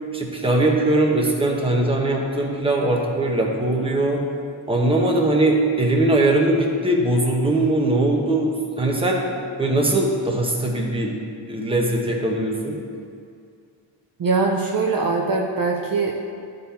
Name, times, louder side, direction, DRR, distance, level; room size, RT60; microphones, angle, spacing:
voice 1, 0.1-4.2 4.7-9.2 9.6-11.1 11.5-12.8, right 2 dB, 10° right, -1 dB, 1.0 m, -20 dB
voice 2, 14.2-16.2, right 3 dB, 45° right, -1 dB, 0.7 m, -22 dB
12.0 x 4.0 x 4.2 m, 2.3 s
wide cardioid pair, 110°, 47 cm